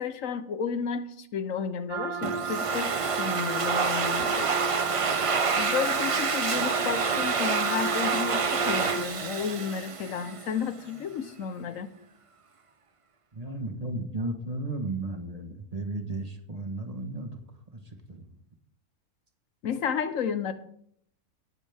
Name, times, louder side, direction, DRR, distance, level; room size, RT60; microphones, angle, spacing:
voice 1, 0.0-4.5 5.5-11.9 19.6-20.5, left 7 dB, 65° left, 11 dB, 1.2 m, -32 dB
sound 1, 1.9-9.1, right 5 dB, 85° right, 1.4 m, -33 dB
Domestic sounds home sounds, 2.2-10.7, right 5 dB, 50° right, 0.4 m, -28 dB
voice 2, 13.3-17.4 17.7-18.3, right 2 dB, 30° right, 5 dB, 1.2 m, -34 dB
18.0 x 7.3 x 3.5 m, 0.66 s
omnidirectional pair, 1.5 m